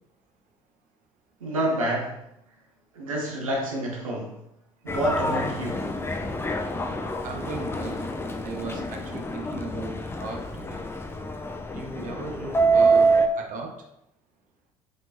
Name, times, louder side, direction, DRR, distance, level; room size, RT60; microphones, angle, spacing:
voice 1, 1.4-2.2 2.9-4.4 4.8-5.9, right 1 dB, 85° right, -1 dB, 0.8 m, -28 dB
Subway metro underground, 4.9-13.3, right 3 dB, 15° left, 0.5 m, -26 dB
voice 2, 7.2-8.2 8.4-10.8 11.7-13.8, right 3 dB, 50° right, 2 dB, 0.9 m, -37 dB
5.2 x 3.6 x 2.7 m, 0.77 s
figure-of-eight pair, 55°, 17 cm